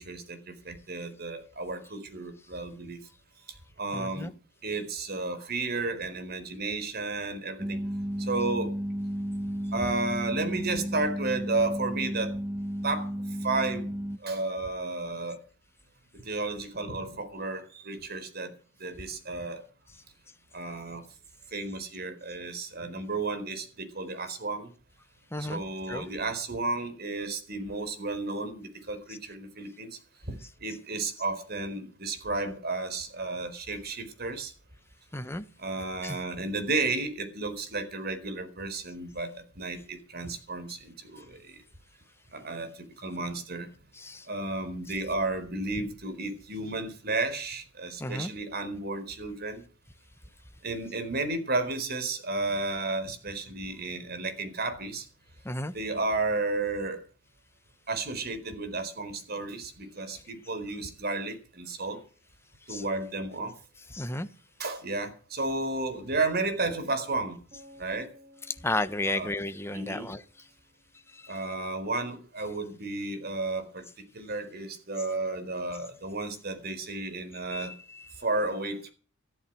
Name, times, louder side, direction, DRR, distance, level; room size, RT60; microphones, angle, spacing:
voice 1, 0.0-3.0 3.8-4.3 4.6-7.8 8.2-8.7 9.7-12.4 12.8-13.1 13.4-13.9 14.2-15.4 16.1-18.5 18.8-19.6 20.5-21.0 21.5-24.7 25.4-29.9 30.6-34.5 35.6-41.4 42.3-42.7 43.0-43.7 44.3-49.6 50.6-55.0 55.7-57.0 57.9-62.0 62.7-63.5 64.6-67.4 67.8-68.1 69.1-69.3 69.7-70.1 71.3-73.8 74.1-77.7 78.2-78.9, right 3 dB, 50° right, 4.3 m, -32 dB
voice 2, 3.9-4.3 25.3-25.6 25.9-26.1 35.1-35.4 36.0-36.2 44.0-44.3 48.0-48.3 55.4-55.7 62.7-62.8 63.9-64.3 68.5-70.2 77.5-78.0, left 2 dB, 10° left, 1.2 m, -33 dB
sound 1, 7.6-14.2, equal, 15° right, 0.9 m, -33 dB
sound 2, 67.5-71.4, left 1 dB, 35° right, 7.1 m, -57 dB
14.0 x 12.5 x 6.2 m
head